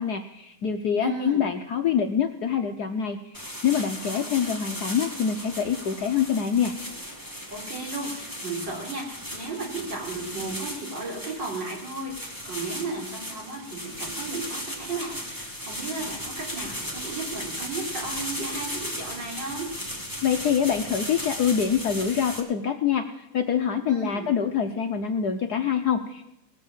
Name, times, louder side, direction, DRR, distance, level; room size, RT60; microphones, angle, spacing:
voice 1, 0.0-6.7 20.2-26.2, left 8 dB, 60° left, 5 dB, 1.1 m, -25 dB
voice 2, 1.0-1.5 4.0-4.4 7.5-19.7 23.9-24.3, right 3 dB, 55° right, -2 dB, 4.7 m, -35 dB
sound 1, 3.3-22.4, equal, 10° right, 2.0 m, -36 dB
19.0 x 7.8 x 7.4 m, 0.87 s
omnidirectional pair, 2.4 m